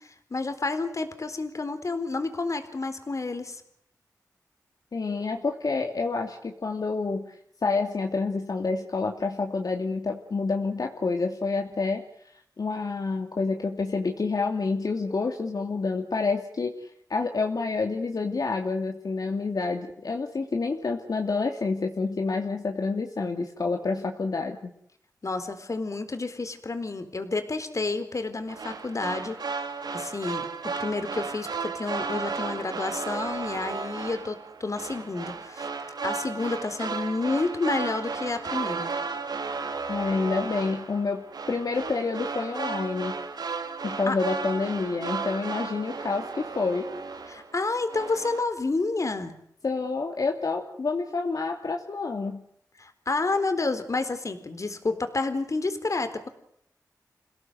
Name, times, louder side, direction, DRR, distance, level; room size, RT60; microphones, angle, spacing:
voice 1, 0.0-3.6 25.2-29.4 29.9-30.5 30.8-35.7 36.0-38.9 44.1-44.2 47.3-49.3 52.8-56.3, left 3 dB, 50° left, 9 dB, 4.0 m, -30 dB
voice 2, 4.9-7.4 7.6-12.0 12.3-24.7 39.9-43.2 43.8-46.8 49.6-52.4, left 4 dB, 65° left, 3 dB, 2.8 m, -28 dB
sound 1, 28.5-47.6 47.9-48.4, right 4 dB, 85° right, 3.2 m, -34 dB
28.5 x 17.5 x 8.0 m, 0.72 s
wide cardioid pair, 65°, 7 cm